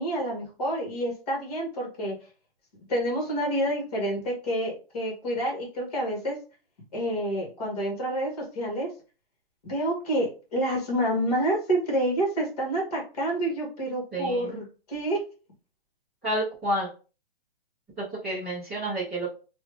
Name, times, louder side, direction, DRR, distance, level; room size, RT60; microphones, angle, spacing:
voice 1, 0.0-2.2 2.9-6.4 6.9-8.9 9.6-15.2, right 1 dB, 40° left, 0 dB, 1.7 m, -28 dB
voice 2, 14.1-14.6 16.2-16.9 18.0-19.3, right 1 dB, ahead, -16 dB, 0.5 m, -30 dB
3.0 x 2.4 x 3.4 m, 0.35 s
hypercardioid pair, 180°, 30 cm